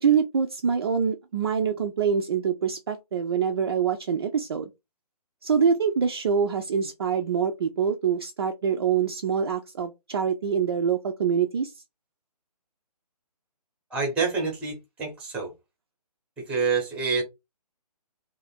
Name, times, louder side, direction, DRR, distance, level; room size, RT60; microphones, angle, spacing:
voice 1, 0.0-4.7 5.4-11.7, right 7 dB, 40° right, 0.4 m, -25 dB
voice 2, 13.9-15.5 16.4-17.2, right 4 dB, 5° right, 0.8 m, -27 dB
2.6 x 2.5 x 4.1 m
hypercardioid pair, 155°, 21 cm